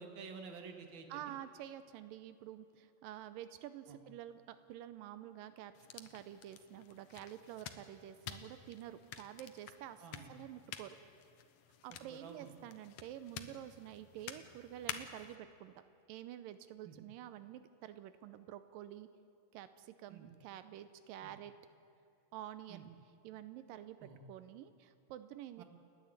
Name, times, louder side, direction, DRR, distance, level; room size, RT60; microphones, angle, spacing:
voice 1, 0.0-1.3 3.9-4.0 10.0-10.3 12.1-12.5 16.8-17.0 20.1-20.3 21.2-21.3 22.7-22.8 24.0-24.2 25.6-25.7, right 5 dB, 40° right, 4 dB, 2.1 m, -50 dB
voice 2, 1.1-11.0 11.8-15.7 16.1-19.1 19.5-21.5 22.3-22.9 23.2-25.6, right 12 dB, 85° right, 12 dB, 2.4 m, -49 dB
sound 1, 5.7-15.4, left 9 dB, 65° left, 1.7 m, -50 dB
29.5 x 11.0 x 8.8 m, 2.6 s
omnidirectional pair, 4.0 m